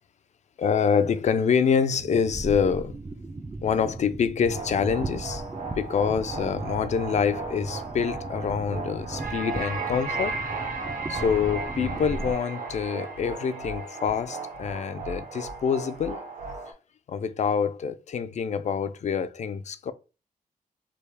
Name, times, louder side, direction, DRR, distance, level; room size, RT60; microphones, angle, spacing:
voice 1, 0.6-3.0 3.6-5.4 5.7-10.4 11.1-16.2 17.1-19.9, left 6 dB, 50° left, 0.4 m, -26 dB
sound 1, 2.0-12.3, right 2 dB, 20° right, 0.4 m, -37 dB
sound 2, 4.5-16.7, right 3 dB, 65° right, 1.0 m, -35 dB
3.4 x 2.3 x 3.2 m
cardioid pair, 100°, 15 cm